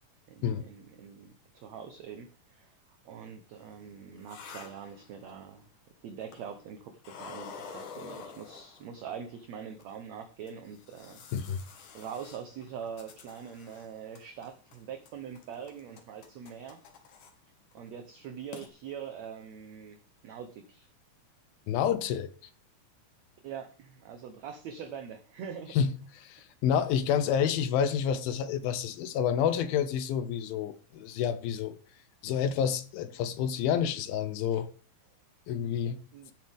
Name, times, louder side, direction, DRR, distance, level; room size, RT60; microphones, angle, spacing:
voice 1, 0.3-5.7 6.0-11.2 11.9-16.8 17.7-20.9 23.4-25.8 36.1-36.3, right 7 dB, 70° right, 1.8 m, -43 dB
sound 1, 3.6-5.5 6.2-6.7 7.0-9.2 9.8-9.9 10.5-13.9 14.2-14.8 15.1-17.3 17.7-17.9 18.2-18.3 18.5-18.7, left 5 dB, 60° left, 3.1 m, -48 dB
voice 2, 21.7-22.3 25.7-25.9 26.2-31.8 32.2-34.7 35.5-36.0, left 8 dB, 90° left, 2.8 m, -29 dB
16.0 x 7.6 x 3.6 m
omnidirectional pair, 4.1 m